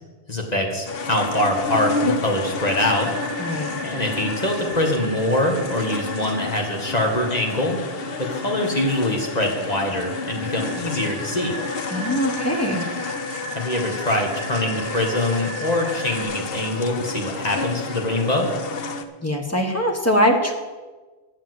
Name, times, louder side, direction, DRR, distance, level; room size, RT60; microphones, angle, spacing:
voice 1, 0.3-3.2 3.8-7.8 8.2-11.6 13.5-18.5, left 1 dB, 40° left, 1 dB, 2.0 m, -24 dB
sound 1, 0.9-19.0, left 4 dB, 65° left, 1.0 m, -30 dB
sound 2, 2.6-16.2, right 2 dB, 85° left, 2.7 m, -38 dB
voice 2, 3.4-3.8 11.9-12.9 19.2-20.6, equal, 15° left, 2 dB, 1.6 m, -22 dB
11.5 x 7.3 x 7.9 m, 1.3 s
omnidirectional pair, 1.1 m